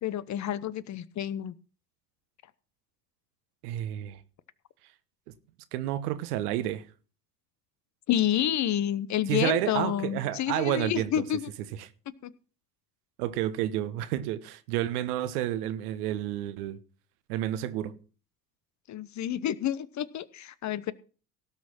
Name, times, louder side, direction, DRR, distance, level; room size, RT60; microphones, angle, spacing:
voice 1, 0.0-1.5 8.1-11.5 12.2-12.3 18.9-20.9, left 11 dB, 35° left, 0.9 m, -29 dB
voice 2, 3.6-4.2 5.7-6.8 9.3-11.2 13.2-16.8 17.3-17.9, right 13 dB, 65° right, 1.3 m, -30 dB
17.5 x 6.2 x 6.0 m
hypercardioid pair, 75°, 48 cm